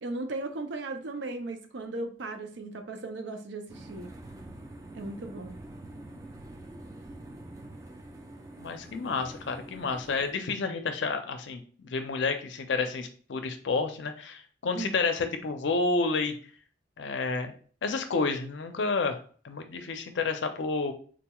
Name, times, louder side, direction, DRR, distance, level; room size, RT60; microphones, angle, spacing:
voice 1, 0.0-4.1 4.9-5.6 14.7-15.0, right 2 dB, 80° right, 0.5 m, -37 dB
sound 1, 3.7-10.3, right 1 dB, 15° right, 0.3 m, -46 dB
voice 2, 8.6-16.3 17.0-17.5 17.8-19.2 19.4-20.9, left 4 dB, 80° left, 0.5 m, -30 dB
3.9 x 2.3 x 2.9 m
head